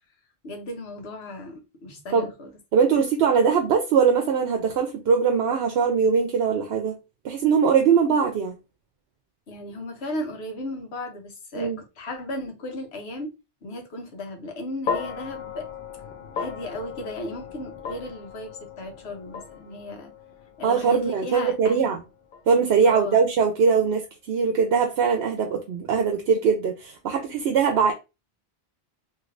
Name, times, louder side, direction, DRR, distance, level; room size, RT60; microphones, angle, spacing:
voice 1, 0.4-2.5 9.5-13.3 13.6-15.7 16.3-20.1 20.6-22.0 22.9-23.2, left 1 dB, 80° left, 1.1 m, -35 dB
voice 2, 2.7-6.9 7.2-8.5 11.6-11.8 20.6-22.0 22.5-24.0 24.3-27.9, right 6 dB, 80° right, 0.8 m, -21 dB
sound 1, 14.9-23.2, left 6 dB, 60° left, 0.6 m, -36 dB
3.2 x 2.8 x 2.5 m
omnidirectional pair, 1.1 m